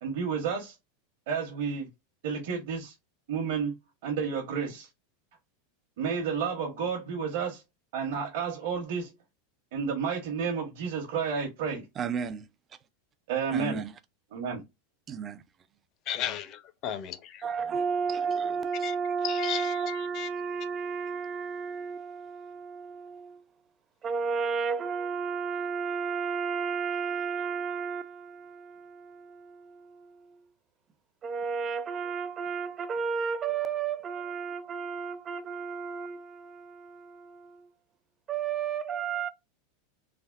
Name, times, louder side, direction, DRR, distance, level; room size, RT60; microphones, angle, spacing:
voice 1, 0.0-0.7 1.3-1.9 2.2-2.9 3.3-3.7 4.0-4.9 6.0-7.6 7.9-9.1 9.7-11.8 13.3-13.8 14.3-14.6, right 6 dB, 70° right, 0.9 m, -31 dB
voice 2, 12.0-12.5 13.5-13.9 15.1-15.4 17.4-23.4 24.0-30.5 31.2-37.7 38.3-39.3, right 6 dB, 25° right, 0.4 m, -33 dB
voice 3, 16.1-17.4 18.8-18.9 19.2-20.3, left 10 dB, 45° left, 0.6 m, -35 dB
3.4 x 2.0 x 2.4 m
supercardioid pair, 130°, 0 cm